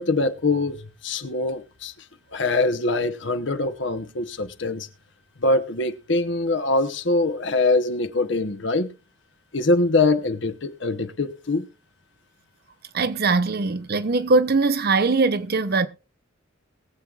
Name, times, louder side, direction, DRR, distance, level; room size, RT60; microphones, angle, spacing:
voice 1, 0.0-1.9 2.3-4.9 5.4-8.9 9.5-11.7, left 2 dB, 65° left, 1.0 m, -23 dB
voice 2, 12.9-15.9, right 3 dB, 50° right, 0.7 m, -21 dB
21.5 x 7.6 x 2.5 m
head